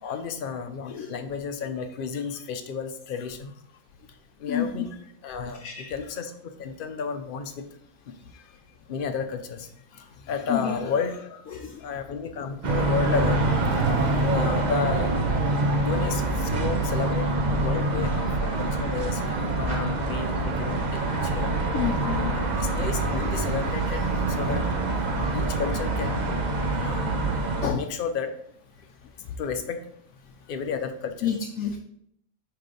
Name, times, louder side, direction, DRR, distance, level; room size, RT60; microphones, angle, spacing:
voice 1, 0.0-3.5 4.4-7.7 8.1-8.6 8.9-9.7 10.2-11.4 11.8-17.3 17.6-19.3 19.6-21.6 21.9-22.0 22.3-24.1 24.4-24.6 25.3-26.3 26.8-27.1 27.7-28.3 29.4-29.8 30.5-31.3, left 6 dB, 55° left, 7 dB, 0.6 m, -32 dB
voice 2, 10.5-10.8 11.5-11.8 21.7-22.4 25.1-25.3 26.8-27.0 27.6-27.9 31.2-31.8, left 8 dB, 70° left, 1 dB, 1.0 m, -29 dB
sound 1, 12.6-27.7, right 2 dB, 40° right, 0.8 m, -25 dB
6.0 x 3.4 x 5.1 m, 0.69 s
omnidirectional pair, 1.5 m